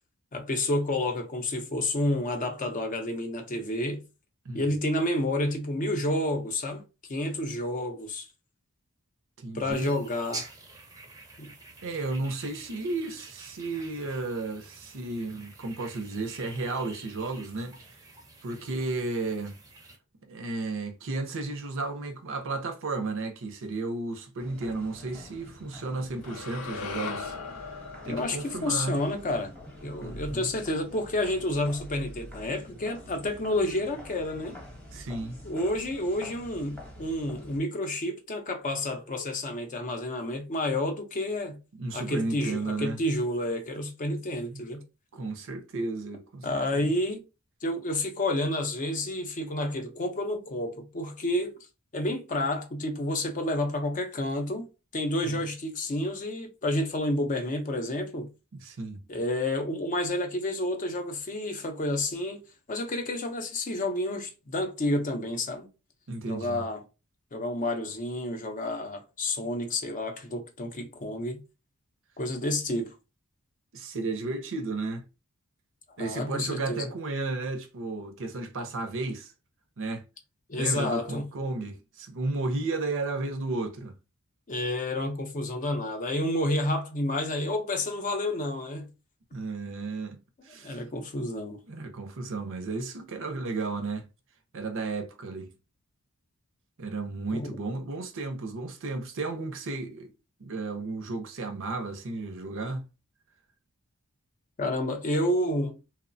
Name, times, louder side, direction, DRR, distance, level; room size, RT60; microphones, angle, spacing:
voice 1, 0.3-4.0 4.5-6.8 7.1-8.3 9.5-10.5 11.4-11.5 28.1-29.5 29.8-34.6 35.4-41.6 41.9-44.8 46.4-47.2 47.6-51.6 51.9-54.7 54.9-58.3 59.1-65.7 66.3-66.8 67.3-71.4 72.2-72.9 76.0-76.9 80.5-81.2 84.5-88.9 90.6-91.6 97.3-97.5 104.6-105.8, left 1 dB, 35° left, 0.5 m, -30 dB
voice 2, 9.4-9.9 11.8-17.9 18.4-19.6 20.3-27.3 27.6-29.0 30.0-30.5 34.9-35.4 41.8-43.0 44.5-44.6 45.1-46.9 55.2-55.4 58.6-59.0 66.1-66.7 73.7-75.0 76.0-79.3 79.8-80.0 80.5-83.9 89.3-90.8 91.7-94.1 94.5-95.5 96.8-100.1 100.4-102.9, right 3 dB, 60° right, 0.5 m, -33 dB
sound 1, 9.7-20.0, right 2 dB, 15° right, 0.5 m, -47 dB
sound 2, 24.4-37.6, left 1 dB, 5° left, 0.8 m, -46 dB
sound 3, 26.2-30.5, left 5 dB, 85° left, 0.5 m, -40 dB
3.0 x 2.0 x 2.5 m
head